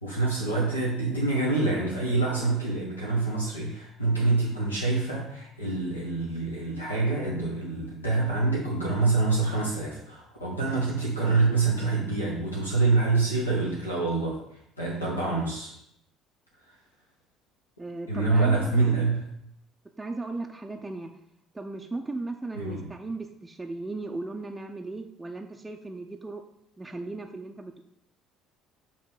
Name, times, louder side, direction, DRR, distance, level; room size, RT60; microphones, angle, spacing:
voice 1, 0.0-14.4 14.8-15.7 18.1-19.2 22.6-22.9, right 3 dB, 85° left, -4 dB, 1.1 m, -26 dB
voice 2, 17.8-19.0 20.0-21.1 21.5-26.4 26.8-27.8, right 2 dB, 15° right, 2 dB, 0.5 m, -36 dB
7.1 x 2.8 x 4.8 m, 0.75 s
figure-of-eight pair, 55°, 0 cm